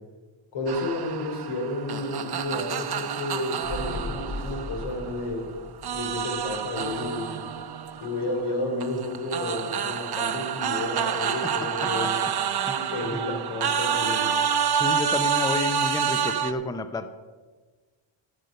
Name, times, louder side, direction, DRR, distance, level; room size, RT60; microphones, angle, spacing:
voice 1, 0.5-5.4 5.9-7.3 8.0-12.2 12.7-14.3, left 1 dB, 85° left, 2 dB, 3.5 m, -31 dB
sound 1, 0.7-5.4 5.8-16.5, right 7 dB, 50° right, 0.8 m, -28 dB
sound 2, 3.6-7.4 7.6-7.7, left 1 dB, 65° left, 4.3 m, -38 dB
voice 2, 12.6-13.2 14.7-17.1, left 2 dB, 10° left, 10 dB, 0.5 m, -31 dB
14.0 x 6.5 x 6.6 m, 1.4 s
wide cardioid pair, 145°, 49 cm